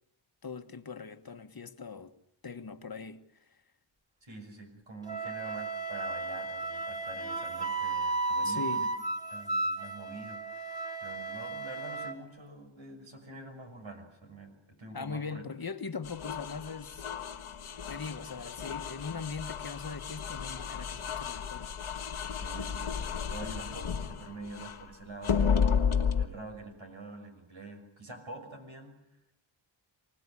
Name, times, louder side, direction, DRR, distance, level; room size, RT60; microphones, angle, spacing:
voice 1, 0.4-2.1 2.4-3.2 8.4-8.9 14.9-17.1 17.9-21.7, left 5 dB, 45° left, 1.4 m, -40 dB
voice 2, 4.2-8.9 9.3-15.4 22.4-25.5 26.2-29.0, right 2 dB, 70° right, 6.1 m, -46 dB
Wind instrument woodwind instrument, 5.1-12.2, right 3 dB, 10° right, 3.2 m, -34 dB
sound 1, 16.0-24.8 25.2-26.3, left 6 dB, 85° left, 1.6 m, -32 dB
25.5 x 18.5 x 9.9 m
wide cardioid pair, 65°, 48 cm